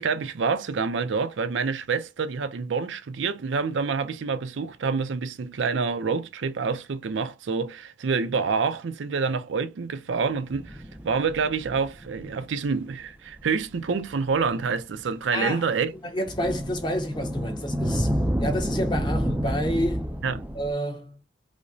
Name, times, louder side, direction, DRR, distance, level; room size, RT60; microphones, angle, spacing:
voice 1, 0.0-15.9 20.2-20.4, right 5 dB, 80° right, 0.5 m, -27 dB
sound 1, 10.3-12.6 13.4-13.5 14.2-14.6 16.3-20.7, equal, 10° right, 0.3 m, -29 dB
voice 2, 15.3-15.7 16.0-18.1 18.4-20.1 20.5-21.2, equal, 25° left, 0.7 m, -29 dB
4.9 x 2.0 x 2.7 m
head